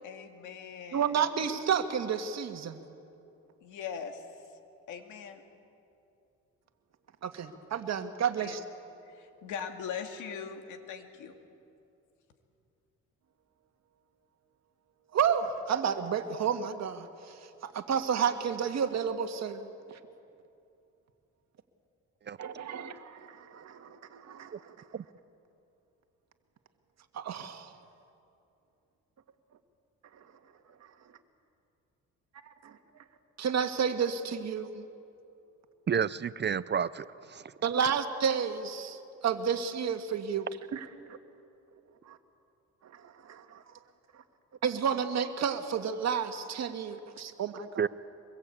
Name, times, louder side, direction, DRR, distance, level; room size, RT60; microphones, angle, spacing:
voice 1, 0.0-1.2 3.6-4.3 4.9-5.4 8.4-8.6 9.1-11.3, left 7 dB, 85° left, 6 dB, 2.2 m, -41 dB
voice 2, 0.9-2.8 7.2-8.6 15.1-19.7 22.4-24.8 27.1-27.7 32.6-32.8 33.4-34.8 37.6-41.2 42.1-42.2 42.9-43.6 44.6-47.8, right 7 dB, 60° right, 7 dB, 1.8 m, -31 dB
voice 3, 35.9-37.1 37.3-37.4 47.8-47.9, right 7 dB, 35° right, 17 dB, 0.6 m, -29 dB
24.5 x 21.5 x 8.4 m, 2.7 s
cardioid pair, 90°, 30 cm